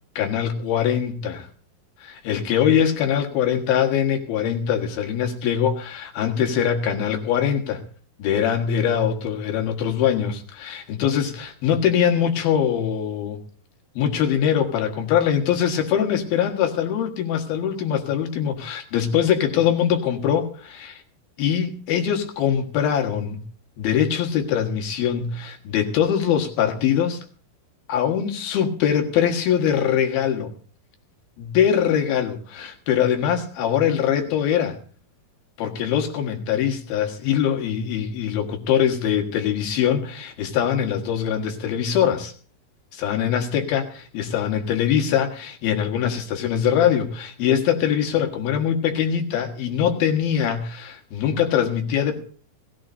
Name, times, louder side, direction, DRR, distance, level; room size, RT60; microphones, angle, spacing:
voice 1, 0.2-1.5 2.0-7.8 8.2-13.4 14.0-21.0 21.4-23.4 23.8-27.3 27.9-30.5 31.4-34.8 35.6-42.3 42.9-52.2, left 9 dB, 70° left, 4 dB, 3.4 m, -22 dB
20.0 x 16.5 x 2.7 m, 0.43 s
omnidirectional pair, 4.6 m